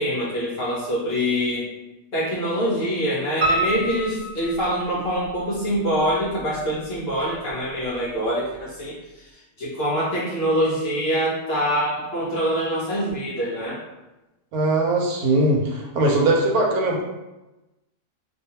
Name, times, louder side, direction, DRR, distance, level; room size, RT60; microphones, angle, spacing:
voice 1, 0.0-1.7 2.1-13.8, equal, 65° left, -6 dB, 0.6 m, -25 dB
Piano, 3.4-5.3 5.7-6.6 6.9-7.0 7.5-7.6 7.8-7.9, right 2 dB, 45° right, 1.0 m, -27 dB
voice 2, 14.5-17.0, right 2 dB, 90° right, -1 dB, 1.1 m, -20 dB
2.5 x 2.2 x 2.8 m, 1.0 s
omnidirectional pair, 1.5 m